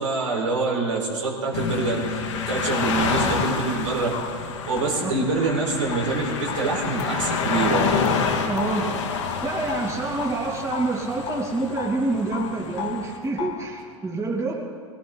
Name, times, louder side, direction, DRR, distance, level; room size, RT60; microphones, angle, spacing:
voice 1, 0.0-2.2 2.5-4.1 4.7-7.9, right 3 dB, 85° right, -3 dB, 4.6 m, -25 dB
sound 1, 1.5-13.2, left 5 dB, 75° left, 2.0 m, -28 dB
sound 2, 3.5-3.6 4.1-10.4 10.7-12.0 12.3-13.7, left 9 dB, 55° left, 2.3 m, -36 dB
voice 2, 8.5-8.9 9.4-14.6, right 3 dB, 20° right, -2 dB, 2.8 m, -27 dB
20.5 x 17.5 x 4.0 m, 2.4 s
hypercardioid pair, 105°, 16 cm